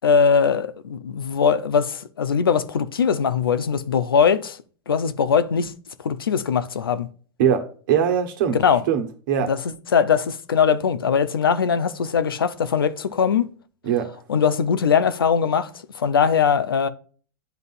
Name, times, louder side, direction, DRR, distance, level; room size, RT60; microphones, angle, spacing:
voice 1, 0.0-4.6 4.9-5.7 6.0-7.1 8.6-8.8 9.4-9.6 9.9-13.4 14.3-15.7 15.9-16.9, left 6 dB, 90° left, 0.7 m, -20 dB
voice 2, 7.4-8.6 8.9-9.5 13.8-14.1, right 8 dB, 65° right, 1.3 m, -21 dB
10.5 x 4.0 x 2.5 m
hypercardioid pair, 105°, 12 cm